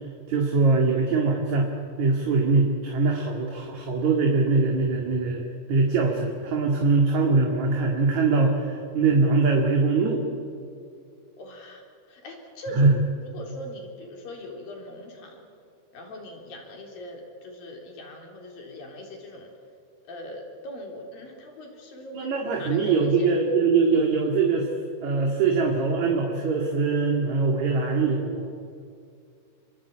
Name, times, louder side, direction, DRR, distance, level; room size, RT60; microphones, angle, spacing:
voice 1, 0.3-1.7 2.0-5.4 5.7-10.3 12.7-12.9 22.1-24.7 25.0-28.5, right 4 dB, 55° right, 1 dB, 3.3 m, -22 dB
voice 2, 11.4-11.8 12.1-13.0 13.2-15.5 15.9-19.5 20.1-23.4, left 1 dB, 65° left, 1 dB, 5.6 m, -40 dB
28.0 x 23.5 x 8.6 m, 2.4 s
omnidirectional pair, 4.3 m